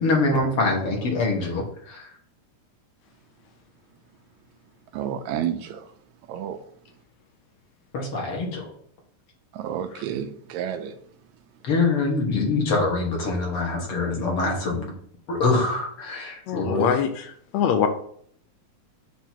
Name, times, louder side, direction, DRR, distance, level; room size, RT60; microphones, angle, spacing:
voice 1, 0.0-2.1 7.9-8.7 11.6-14.9 15.3-16.9, left 3 dB, 55° left, 0 dB, 2.1 m, -24 dB
voice 2, 4.9-5.8 6.3-6.6 9.5-10.9, right 9 dB, 80° right, 8 dB, 1.9 m, -30 dB
voice 3, 16.5-17.2 17.5-17.9, left 8 dB, 75° left, 6 dB, 1.7 m, -22 dB
7.4 x 3.0 x 5.7 m, 0.63 s
omnidirectional pair, 3.4 m